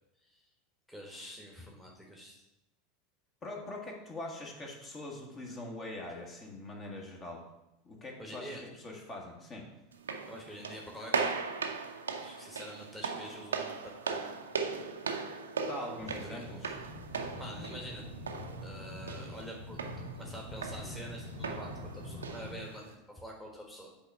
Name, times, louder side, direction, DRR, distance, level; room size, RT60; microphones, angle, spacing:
voice 1, 0.9-2.4 8.2-8.6 10.3-11.4 12.2-13.8 14.0-14.3 16.2-16.9 17.4-18.1 18.6-19.8 20.1-23.9, equal, 5° left, -1 dB, 1.5 m, -46 dB
voice 2, 3.4-7.4 7.8-9.7 15.6-16.7, left 2 dB, 30° left, 0 dB, 1.6 m, -43 dB
sound 1, 9.9-22.9, right 5 dB, 80° right, 0.6 m, -39 dB
sound 2, 16.0-22.5, left 1 dB, 80° left, 2.0 m, -45 dB
8.3 x 3.5 x 5.5 m, 0.93 s
figure-of-eight pair, 80°, 0 cm